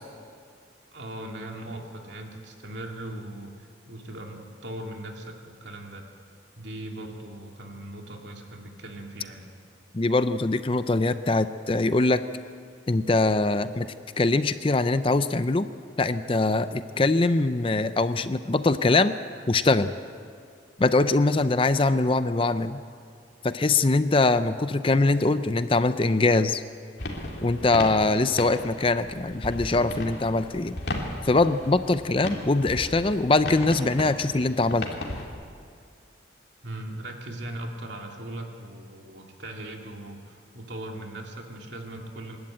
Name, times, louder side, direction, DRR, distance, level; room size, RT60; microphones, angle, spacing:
voice 1, 0.9-6.0 6.6-9.5 36.6-42.4, right 1 dB, 70° right, 1 dB, 2.8 m, -39 dB
voice 2, 9.9-12.2 12.9-13.9 14.2-15.7 16.0-19.1 19.5-19.9 20.8-22.8 23.4-26.6 27.4-30.8 31.2-34.9, left 2 dB, 30° left, 12 dB, 0.5 m, -22 dB
sound 1, 27.0-35.3, left 1 dB, 60° left, 2.7 m, -36 dB
28.0 x 12.0 x 8.8 m, 2.2 s
head